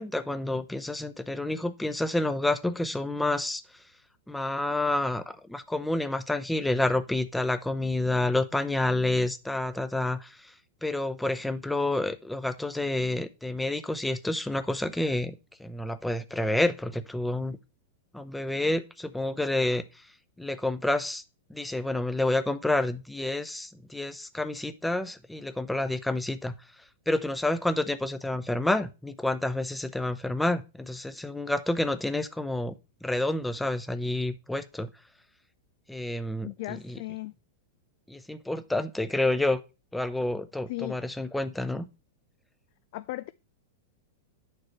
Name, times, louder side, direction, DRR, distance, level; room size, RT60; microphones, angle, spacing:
voice 1, 0.0-3.6 4.3-5.2 5.5-10.3 10.8-15.3 15.6-17.6 18.1-19.8 20.4-21.2 21.5-26.5 27.1-32.7 33.0-34.9 35.9-36.5 36.9-37.0 38.1-39.6 39.9-41.9, left 2 dB, 5° left, 0.8 m, -29 dB
voice 2, 36.4-37.3 40.7-41.0 42.9-43.3, left 18 dB, 60° left, 0.4 m, -36 dB
9.5 x 6.7 x 3.2 m
hypercardioid pair, 125°, 0 cm